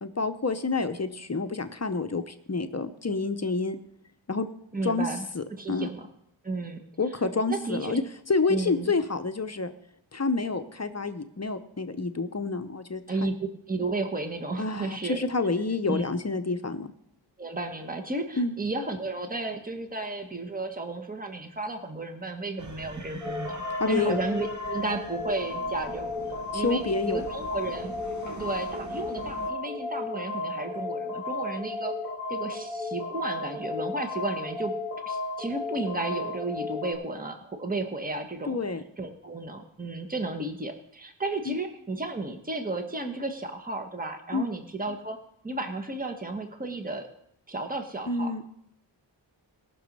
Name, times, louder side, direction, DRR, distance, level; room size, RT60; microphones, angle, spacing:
voice 1, 0.0-3.8 4.3-4.5 4.8-5.1 5.3-5.9 7.0-8.0 8.3-9.7 10.1-13.0 14.6-16.9 18.4-18.5 23.8-24.2 26.5-27.2 38.5-38.8 41.5-41.6 44.3-44.5 48.1-48.4, left 3 dB, 35° left, 9 dB, 0.7 m, -28 dB
voice 2, 4.7-6.1 6.4-6.8 7.5-8.0 8.5-8.9 13.1-15.2 15.9-16.0 17.4-26.8 27.1-27.9 28.4-31.9 32.3-34.8 35.1-38.6 39.0-45.2 45.4-47.1 47.5-48.3, right 2 dB, 20° right, 6 dB, 1.2 m, -33 dB
sound 1, 22.6-29.5, right 3 dB, 40° right, 1.0 m, -44 dB
sound 2, 23.2-36.9, left 2 dB, 70° right, 3.6 m, -34 dB
18.0 x 6.2 x 5.3 m, 0.73 s
wide cardioid pair, 85°, 46 cm